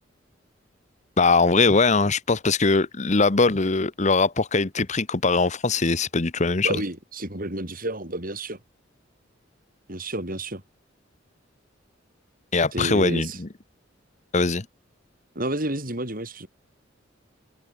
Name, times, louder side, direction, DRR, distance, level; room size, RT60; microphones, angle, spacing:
voice 1, 1.2-6.8 12.5-13.5 14.3-14.6, left 3 dB, 40° left, 1.0 m, -21 dB
voice 2, 6.6-8.6 9.9-10.6 12.7-13.4 15.3-16.5, right 1 dB, 50° right, 6.8 m, -30 dB
open air
head